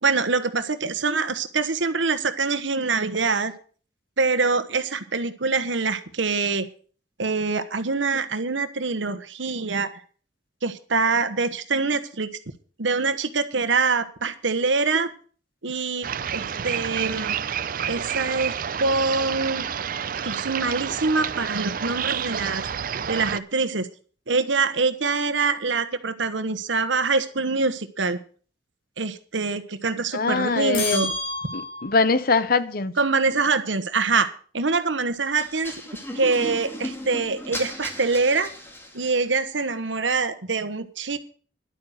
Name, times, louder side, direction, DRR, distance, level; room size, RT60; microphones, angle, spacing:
voice 1, 0.0-3.5 4.2-6.7 7.2-9.9 10.6-12.3 12.8-15.1 15.6-17.3 17.9-19.7 20.2-22.6 23.1-23.9 24.3-28.2 29.0-31.1 33.0-35.7 36.1-38.5 38.9-41.2, right 4 dB, 90° right, 1.2 m, -24 dB
sound 1, 16.0-23.4, right 8 dB, 50° right, 0.5 m, -29 dB
voice 2, 30.1-31.1 31.5-32.9, left 4 dB, 55° left, 0.8 m, -22 dB
sound 2, 30.7-32.1, left 2 dB, 80° left, 4.1 m, -30 dB
sound 3, 35.3-39.3, equal, 15° left, 2.1 m, -36 dB
11.5 x 9.0 x 6.5 m
head